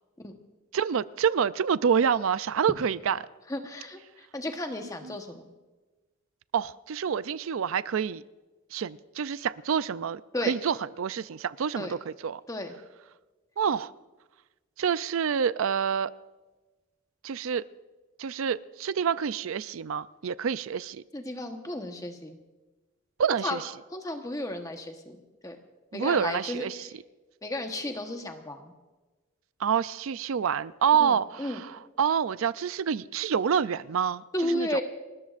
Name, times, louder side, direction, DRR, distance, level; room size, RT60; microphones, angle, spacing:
voice 1, 0.7-3.2 6.5-8.2 8.7-12.4 13.6-13.9 14.8-16.1 17.2-17.7 18.2-21.0 23.2-23.6 25.9-26.8 29.6-31.5 32.0-34.7, right 7 dB, 80° right, 16 dB, 0.4 m, -27 dB
voice 2, 3.5-5.4 10.3-10.5 11.7-11.9 12.5-12.7 21.1-22.4 23.4-23.6 23.9-25.2 25.4-25.6 25.9-26.9 27.4-28.7 31.0-31.6 34.3-34.8, left 1 dB, 15° left, 5 dB, 1.1 m, -33 dB
30.0 x 13.5 x 2.5 m, 1.2 s
head